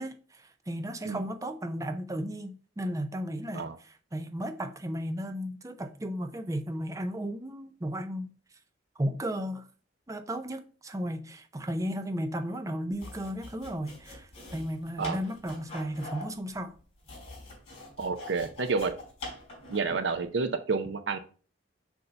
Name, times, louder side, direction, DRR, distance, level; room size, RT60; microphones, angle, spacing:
voice 1, 0.0-8.3 9.0-9.7 10.1-16.8 19.9-20.0, equal, 15° right, 0.5 m, -34 dB
sound 1, 12.9-20.0, left 2 dB, 35° left, 3.4 m, -45 dB
voice 2, 18.0-18.9 19.7-21.2, right 4 dB, 65° right, 0.6 m, -29 dB
6.5 x 2.7 x 5.5 m
head